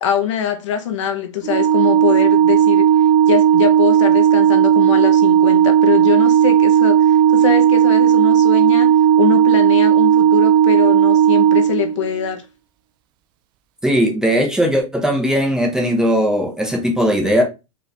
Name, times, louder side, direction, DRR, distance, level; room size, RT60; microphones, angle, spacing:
voice 1, 0.0-2.9 3.3-12.4, left 9 dB, 65° left, 1.0 m, -23 dB
Organ, 1.4-12.3, right 9 dB, 25° right, 0.3 m, -14 dB
voice 2, 13.8-17.4, equal, 5° right, 0.7 m, -18 dB
4.7 x 2.5 x 3.3 m
hypercardioid pair, 140°, 17 cm